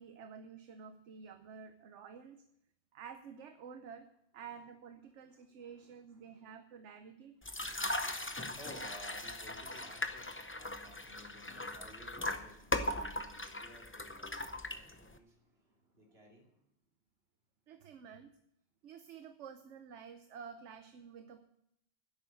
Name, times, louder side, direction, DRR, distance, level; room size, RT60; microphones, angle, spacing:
voice 1, 0.0-2.4 2.9-4.1 4.3-7.3 17.7-18.3 18.8-21.4, right 6 dB, 75° right, 9 dB, 1.1 m, -51 dB
voice 2, 5.6-6.5 7.5-15.3 15.9-16.5, left 1 dB, 55° right, 0 dB, 3.0 m, -57 dB
sound 1, 7.4-15.2, left 1 dB, 15° left, 0.5 m, -39 dB
10.5 x 8.4 x 8.7 m, 0.78 s
omnidirectional pair, 1.2 m